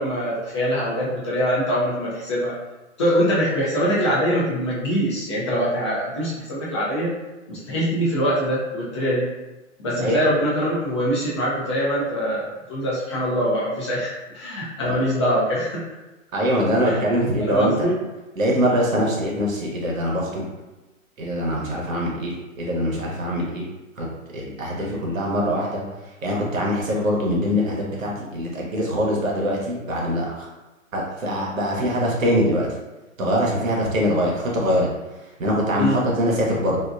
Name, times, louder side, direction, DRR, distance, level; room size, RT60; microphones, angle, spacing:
voice 1, 0.0-2.6 3.0-7.1 7.5-9.3 9.8-15.8 16.8-17.0 17.5-17.9 35.8-36.0, equal, 25° left, -6 dB, 0.3 m, -23 dB
voice 2, 16.3-17.7 18.4-20.5 21.2-23.7 24.0-24.1 24.3-25.8 26.2-30.5 30.9-32.7 33.2-34.9 35.4-36.8, equal, 85° right, -3 dB, 0.9 m, -23 dB
2.6 x 2.1 x 2.4 m, 1.1 s
hypercardioid pair, 125°, 40 cm